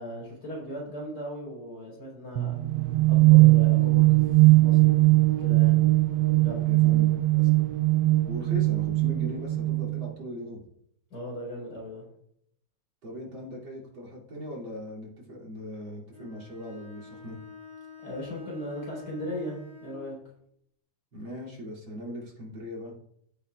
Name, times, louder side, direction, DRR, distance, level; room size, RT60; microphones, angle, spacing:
voice 1, 0.0-2.5 3.1-5.9 6.4-6.7 11.1-12.1 18.0-20.2, equal, 50° left, -3 dB, 4.8 m, -38 dB
sound 1, 2.4-10.1, right 20 dB, 80° right, 1.0 m, -20 dB
voice 2, 6.2-7.6 8.3-10.6 13.0-17.4 21.1-22.9, left 1 dB, 60° right, -3 dB, 3.5 m, -40 dB
Bowed string instrument, 16.1-20.1, left 3 dB, 15° right, 2.4 m, -48 dB
15.5 x 8.1 x 2.4 m, 0.71 s
omnidirectional pair, 2.4 m